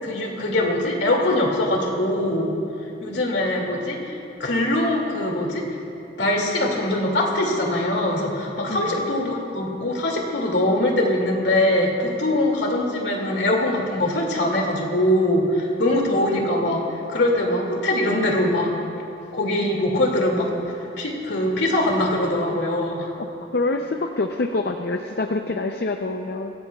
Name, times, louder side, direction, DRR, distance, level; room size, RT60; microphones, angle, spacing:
voice 1, 0.0-2.5 3.0-5.6 6.2-16.8 17.1-18.7 19.3-20.5 21.0-23.1, left 1 dB, 75° left, 0 dB, 2.4 m, -22 dB
voice 2, 8.7-9.1 23.2-23.3 23.5-26.5, left 2 dB, 60° left, 5 dB, 0.5 m, -26 dB
23.5 x 16.5 x 2.3 m, 2.7 s
head